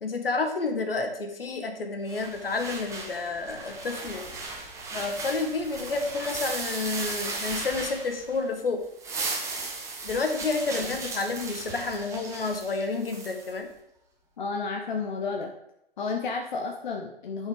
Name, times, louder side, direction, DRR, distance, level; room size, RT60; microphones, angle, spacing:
voice 1, 0.0-4.3 4.9-8.8 10.0-13.7, left 3 dB, 70° left, 5 dB, 1.8 m, -30 dB
sound 1, 2.1-8.5 8.8-13.5, right 3 dB, 10° right, 1.3 m, -36 dB
voice 2, 14.4-15.5 16.0-17.5, left 4 dB, 50° left, 2 dB, 1.1 m, -31 dB
10.5 x 5.7 x 4.8 m, 0.81 s
figure-of-eight pair, 130°, 30 cm